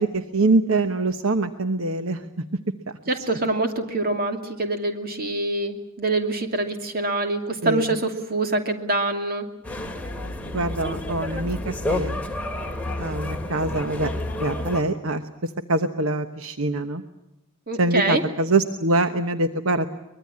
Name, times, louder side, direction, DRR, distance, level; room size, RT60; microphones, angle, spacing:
voice 1, 0.0-2.2 7.6-7.9 10.5-12.2 13.0-14.1 14.4-15.2 15.7-17.0 17.8-19.9, right 2 dB, 70° right, 9 dB, 1.1 m, -24 dB
voice 2, 3.1-9.5 17.7-18.2, right 2 dB, 45° right, 5 dB, 2.6 m, -25 dB
sound 1, 9.6-14.8, left 1 dB, 5° left, 2.2 m, -30 dB
24.0 x 21.5 x 8.6 m, 0.91 s
head